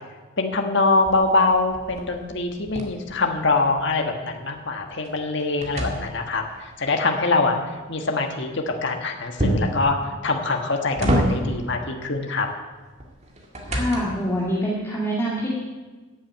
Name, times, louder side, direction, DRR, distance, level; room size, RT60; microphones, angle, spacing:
voice 1, 0.4-12.5, left 3 dB, 55° left, 4 dB, 1.5 m, -24 dB
sound 1, 1.0-3.9 4.3-6.6 9.4-9.9 10.5-11.7 13.0-14.3, equal, 30° right, 2.1 m, -27 dB
voice 2, 13.7-15.5, equal, 10° left, -6 dB, 2.1 m, -25 dB
14.0 x 7.6 x 9.2 m, 1.3 s
head